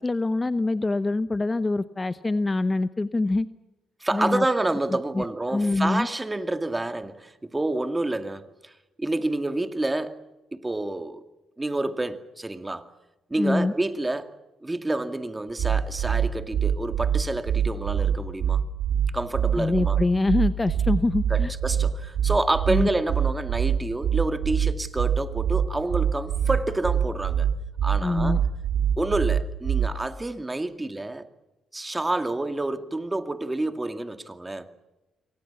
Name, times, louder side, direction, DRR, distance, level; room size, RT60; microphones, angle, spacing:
voice 1, 0.0-3.5 4.1-4.4 5.1-5.2 5.5-6.1 13.4-13.7 19.6-21.5 22.7-22.9 28.0-28.4, left 2 dB, 20° left, 0.9 m, -24 dB
voice 2, 4.0-10.2 10.5-11.2 11.6-12.9 13.3-14.3 14.6-18.6 19.1-20.0 21.3-27.5 27.8-28.4 29.0-31.3 31.7-34.7, right 2 dB, 15° right, 2.2 m, -28 dB
sound 1, 15.6-30.1, right 8 dB, 75° right, 2.6 m, -24 dB
28.5 x 24.0 x 7.1 m
cardioid pair, 90°, 0 cm